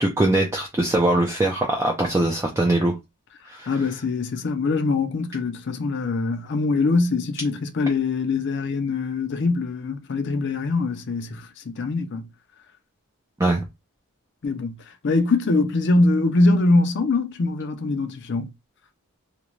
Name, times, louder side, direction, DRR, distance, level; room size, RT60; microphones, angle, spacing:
voice 1, 0.0-3.0 3.4-3.7 13.4-13.6, right 2 dB, 15° right, 0.3 m, -21 dB
voice 2, 3.7-12.3 14.4-14.8 15.0-18.5, left 3 dB, 50° left, 0.4 m, -23 dB
2.5 x 2.2 x 3.0 m
head